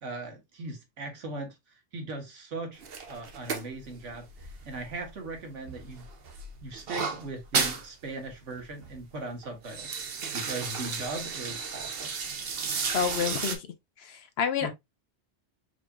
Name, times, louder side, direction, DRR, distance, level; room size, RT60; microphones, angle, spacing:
voice 1, 0.0-6.1 6.6-12.1 14.6-14.7, right 2 dB, 85° right, 1.6 m, -39 dB
sound 1, 2.8-5.4 5.7-7.9 8.2-8.3 8.6-9.0 9.4-13.6, right 5 dB, 55° right, 1.0 m, -33 dB
voice 2, 12.9-13.7 14.0-14.7, left 7 dB, 65° left, 0.9 m, -29 dB
4.8 x 4.1 x 2.3 m
omnidirectional pair, 1.2 m